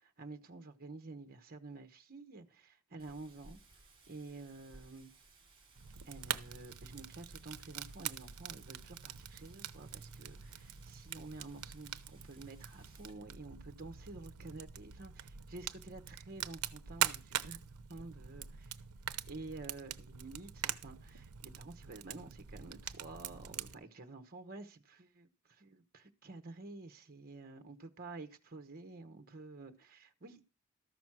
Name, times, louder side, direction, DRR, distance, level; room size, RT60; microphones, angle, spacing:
voice 1, 0.0-3.6 4.1-5.1 6.1-17.6 17.9-18.7 19.2-30.4, right 3 dB, 45° right, 1.0 m, -50 dB
Wind, 3.0-13.1, right 2 dB, 25° right, 3.1 m, -62 dB
Fire, 5.8-23.7, right 10 dB, 85° right, 0.7 m, -43 dB
13.5 x 6.1 x 6.0 m
head